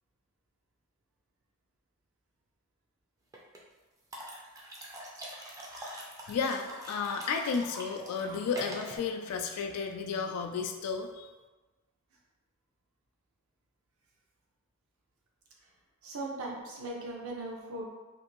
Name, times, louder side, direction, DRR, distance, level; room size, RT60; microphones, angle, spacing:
sound 1, 3.3-3.6 4.1-9.0, equal, 15° right, 0.4 m, -44 dB
voice 1, 6.0-11.3, left 5 dB, 90° left, 8 dB, 0.3 m, -33 dB
voice 2, 16.0-17.9, right 2 dB, 70° right, -1 dB, 0.6 m, -38 dB
2.5 x 2.5 x 3.0 m, 1.2 s
head